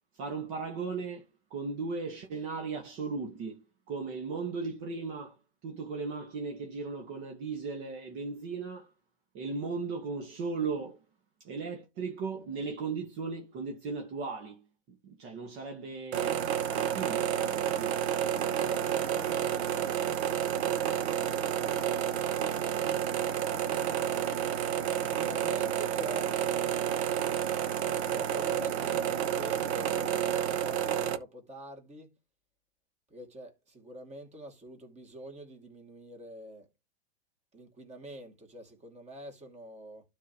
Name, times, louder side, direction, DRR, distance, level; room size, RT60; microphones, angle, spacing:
voice 1, 0.1-3.6 3.9-8.9 9.3-11.0 11.4-16.4 16.7-18.1, right 4 dB, 45° right, 1.5 m, -37 dB
sound 1, 16.1-31.2, right 9 dB, 70° right, 1.1 m, -30 dB
voice 2, 24.7-26.3 27.5-32.1 33.1-36.7 37.5-40.0, equal, 20° right, 2.4 m, -46 dB
12.0 x 4.0 x 2.9 m
hypercardioid pair, 125°, 33 cm